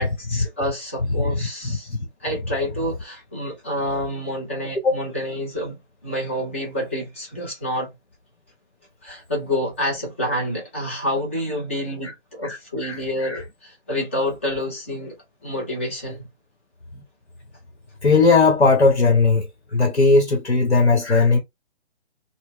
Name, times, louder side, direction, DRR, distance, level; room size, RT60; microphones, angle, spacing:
voice 1, 0.0-1.9 2.2-7.9 9.0-15.1 15.4-16.2, left 1 dB, 10° left, 0.6 m, -28 dB
voice 2, 1.6-2.0 4.8-5.0 12.0-12.1 12.4-13.4 16.9-17.0 18.0-19.5 19.7-21.4, left 4 dB, 65° left, 1.1 m, -18 dB
4.3 x 2.1 x 3.0 m
figure-of-eight pair, 140°, 34 cm